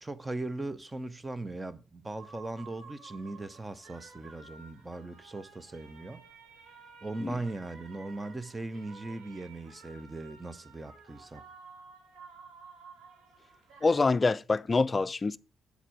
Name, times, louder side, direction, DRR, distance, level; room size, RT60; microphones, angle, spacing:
voice 1, 0.0-6.2 7.0-11.4, right 2 dB, 15° right, 0.6 m, -39 dB
sound 1, 2.2-14.0, right 5 dB, 85° right, 2.8 m, -53 dB
voice 2, 13.8-15.4, left 3 dB, 30° left, 0.4 m, -25 dB
8.2 x 4.3 x 6.2 m
cardioid pair, 90°, 0 cm